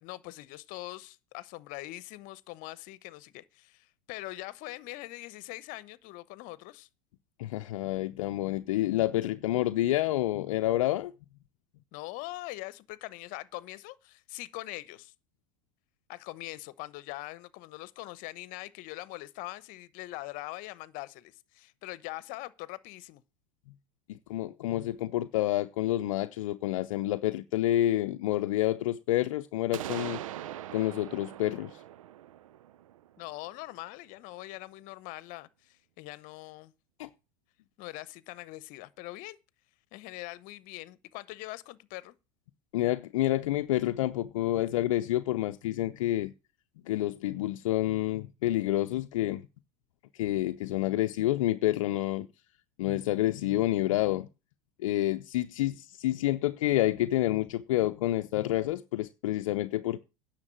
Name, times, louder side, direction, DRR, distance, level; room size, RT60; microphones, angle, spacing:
voice 1, 0.0-6.9 11.9-15.1 16.1-23.2 33.2-36.7 37.8-39.4 39.9-42.2, left 19 dB, 55° left, 1.0 m, -42 dB
voice 2, 7.4-11.1 24.1-30.2 30.7-31.8 37.0-37.1 42.7-46.3 46.9-49.4 50.2-52.3 52.8-54.3 54.8-60.0, left 15 dB, 75° left, 0.6 m, -28 dB
sound 1, 29.7-33.5, right 12 dB, 80° right, 0.7 m, -42 dB
9.8 x 6.6 x 8.8 m
hypercardioid pair, 90°, 17 cm